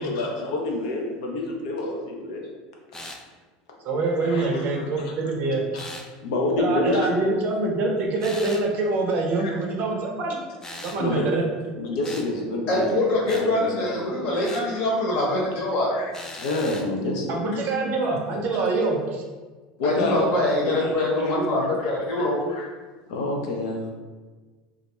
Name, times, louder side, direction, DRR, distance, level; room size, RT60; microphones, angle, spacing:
voice 1, 0.0-2.5 4.2-5.1 5.7-5.9 6.2-7.2 9.4-9.5 11.0-11.4 11.8-12.9 13.3-14.0 15.9-17.4 19.8-20.2 20.7-21.3 21.8-21.9 22.2-22.7 23.1-23.9, left 2 dB, 80° left, 0 dB, 0.5 m, -28 dB
sound 1, 2.9-3.2 5.7-6.1 8.2-8.7 10.6-11.0 12.0-12.3 13.3-13.5 14.4-14.7 16.1-16.9, left 1 dB, 15° left, 0.3 m, -39 dB
voice 2, 3.8-5.6 6.6-10.4 10.8-11.4 17.3-19.2, right 3 dB, 50° right, 0 dB, 0.5 m, -25 dB
voice 3, 12.7-15.9 19.8-22.4, left 1 dB, 55° left, -3 dB, 0.9 m, -24 dB
2.4 x 2.1 x 2.9 m, 1.3 s
supercardioid pair, 105°, 4 cm